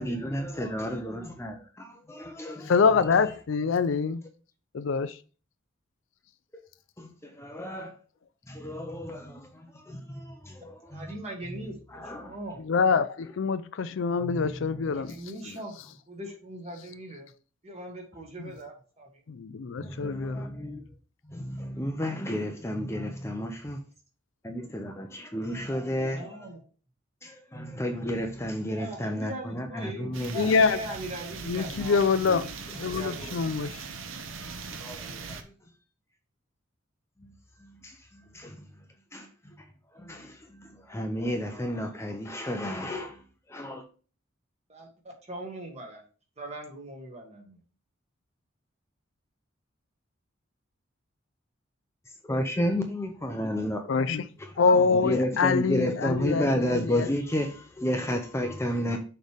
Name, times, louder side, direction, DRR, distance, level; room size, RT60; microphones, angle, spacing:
voice 1, 0.0-2.7 6.5-6.7 7.0-7.9 8.5-11.1 11.9-12.4 14.1-14.7 19.8-20.9 21.2-23.8 24.4-26.4 27.2-30.5 32.7-32.8 33.2-33.3 34.3-35.5 37.2-37.3 37.6-38.7 39.1-39.7 39.9-43.2 43.5-43.8 52.2-53.8 54.4-59.0, equal, 15° left, 0.6 m, -32 dB
voice 2, 2.7-4.2 4.7-5.2 12.6-15.2 15.4-15.9 18.4-18.5 19.3-20.5 30.3-30.8 31.5-32.5 32.8-33.8 53.8-54.2 54.6-57.1, left 5 dB, 70° left, 0.4 m, -25 dB
voice 3, 10.9-12.6 14.9-15.8 16.1-17.3 17.6-19.2 26.0-26.6 28.7-32.0 32.4-32.6 32.8-33.7 44.7-46.0 46.4-47.6, right 1 dB, 35° right, 1.7 m, -40 dB
sound 1, 30.1-35.4, right 5 dB, 80° right, 0.8 m, -40 dB
6.4 x 3.3 x 5.0 m
head